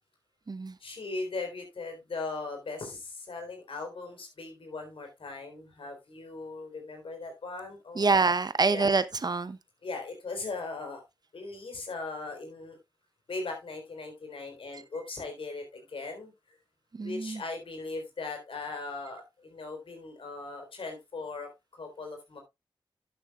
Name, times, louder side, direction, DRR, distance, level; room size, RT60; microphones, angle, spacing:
voice 1, 0.8-8.1 8.7-8.9 9.8-11.0 11.3-12.8 13.3-16.3 17.0-21.5 21.8-22.4, left 3 dB, 70° left, 3.8 m, -39 dB
voice 2, 8.0-9.6 16.9-17.4, right 4 dB, 45° right, 0.8 m, -26 dB
11.0 x 8.0 x 2.4 m
cardioid pair, 40°, 9 cm